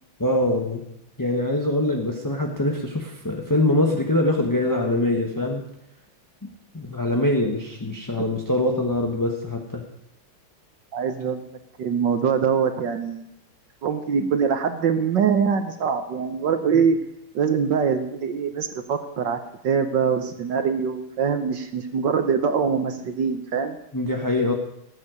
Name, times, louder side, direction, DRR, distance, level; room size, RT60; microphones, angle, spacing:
voice 1, 0.2-0.8 1.2-5.6 6.7-9.8 14.2-14.3 16.7-16.8 23.9-24.5, left 1 dB, 10° left, 1 dB, 1.0 m, -23 dB
voice 2, 10.9-11.5 11.8-13.2 13.8-17.0 17.3-23.8, right 6 dB, 65° right, 7 dB, 1.5 m, -23 dB
18.5 x 8.7 x 6.5 m, 0.80 s
omnidirectional pair, 2.2 m